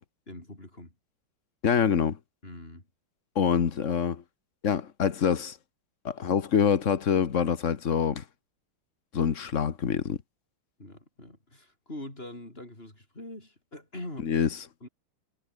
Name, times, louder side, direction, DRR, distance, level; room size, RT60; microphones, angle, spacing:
voice 1, 0.3-0.9 2.4-2.9 10.8-14.3 14.8-14.9, left 1 dB, 25° left, 6.3 m, -43 dB
voice 2, 1.6-2.2 3.3-4.2 4.6-5.6 6.0-8.2 9.1-10.2 14.2-14.5, left 7 dB, 40° left, 1.4 m, -25 dB
omnidirectional pair, 2.4 m